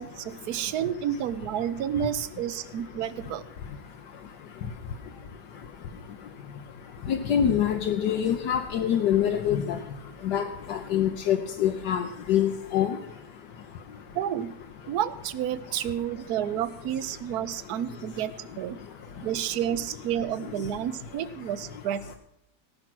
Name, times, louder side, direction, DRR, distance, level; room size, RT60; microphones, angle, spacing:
voice 1, 0.0-3.5 14.1-14.6 14.9-18.8 19.2-22.1, right 10 dB, 70° right, 15 dB, 1.1 m, -30 dB
voice 2, 7.1-9.8 10.2-10.4 10.7-12.0 12.3-13.0, left 9 dB, 80° left, 5 dB, 1.4 m, -25 dB
18.0 x 6.0 x 6.0 m, 0.77 s
omnidirectional pair, 1.8 m